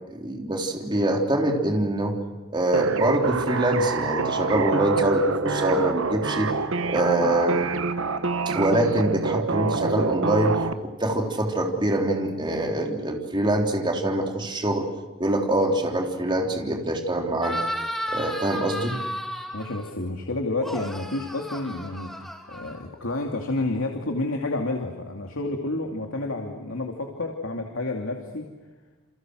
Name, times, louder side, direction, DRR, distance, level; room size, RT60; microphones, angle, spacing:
voice 1, 0.1-2.2 2.5-6.5 6.9-7.7 8.5-14.9 15.2-17.6 18.1-19.0, right 1 dB, 25° right, 2 dB, 3.5 m, -24 dB
sound 1, 2.7-10.7, right 4 dB, 80° right, 1.3 m, -27 dB
sound 2, 17.4-19.9 20.6-23.1, equal, ahead, 3.5 m, -33 dB
voice 2, 19.5-22.1 22.5-28.5, left 2 dB, 85° left, 2 dB, 2.7 m, -30 dB
29.0 x 28.0 x 6.4 m, 1.2 s
head